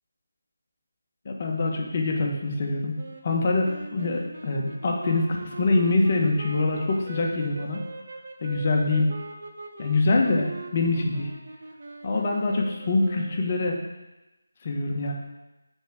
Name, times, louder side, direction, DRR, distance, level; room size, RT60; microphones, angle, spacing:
voice 1, 1.2-3.0 3.2-7.9 8.4-9.1 9.8-11.3 12.0-13.8 14.6-15.1, left 3 dB, 35° left, 1 dB, 1.1 m, -24 dB
sound 1, 3.0-13.7, right 3 dB, 55° right, 0.9 m, -42 dB
5.4 x 4.5 x 6.2 m, 1.0 s
figure-of-eight pair, 160°, 0 cm